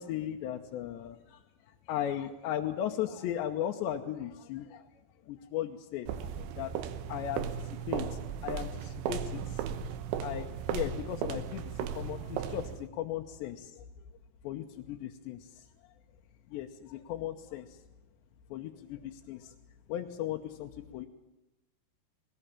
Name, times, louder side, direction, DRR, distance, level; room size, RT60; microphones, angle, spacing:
voice 1, 0.0-4.9 5.3-9.6 10.2-13.9 14.4-15.7 16.5-17.8 18.5-19.5 19.9-21.1, left 11 dB, 80° left, 3 dB, 3.1 m, -37 dB
sound 1, 6.1-12.9, right 8 dB, 90° right, 3.6 m, -36 dB
20.5 x 19.5 x 8.9 m, 0.95 s
omnidirectional pair, 5.3 m